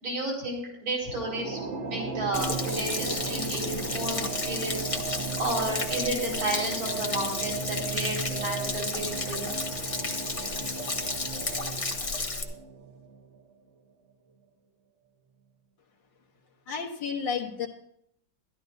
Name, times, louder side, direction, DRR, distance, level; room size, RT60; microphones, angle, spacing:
voice 1, 0.0-4.9 5.4-9.5, right 1 dB, 75° right, -2 dB, 5.6 m, -32 dB
sound 1, 1.0-13.6, right 4 dB, 45° right, 1.2 m, -36 dB
Stream / Splash splatter / Trickle dribble, 2.3-12.4, left 3 dB, 30° left, 0.6 m, -33 dB
voice 2, 16.7-17.7, left 6 dB, 70° left, 1 dB, 1.8 m, -31 dB
12.5 x 12.5 x 4.0 m, 0.71 s
omnidirectional pair, 2.1 m